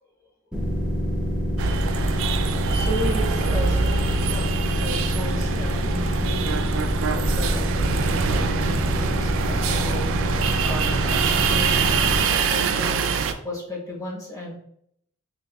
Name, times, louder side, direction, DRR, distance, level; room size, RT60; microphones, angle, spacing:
sound 1, 0.5-12.2, equal, 5° right, 0.7 m, -26 dB
sound 2, 1.6-13.3, right 5 dB, 60° right, 0.4 m, -25 dB
voice 1, 2.3-6.7 7.1-11.8 12.2-14.5, left 1 dB, 15° left, -4 dB, 1.1 m, -35 dB
4.6 x 2.8 x 2.3 m, 0.70 s
head